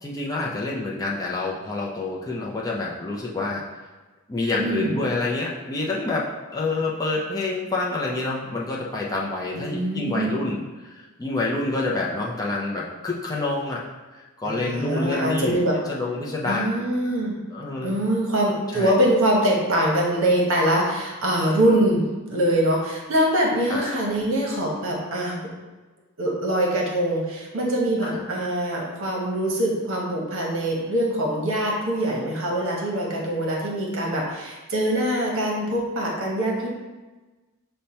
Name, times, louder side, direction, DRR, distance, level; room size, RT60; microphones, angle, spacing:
voice 1, 0.0-3.6 4.3-13.8 14.2-15.6 15.9-16.7 17.5-17.9 18.7-18.9 23.7-24.0 28.0-28.1, left 2 dB, 15° left, -4 dB, 0.5 m, -27 dB
voice 2, 4.6-5.0 9.5-10.4 14.5-15.8 16.4-17.4 17.8-22.0 22.3-25.5 26.2-36.7, right 1 dB, 65° right, -2 dB, 1.0 m, -23 dB
5.3 x 2.2 x 4.3 m, 1.2 s
head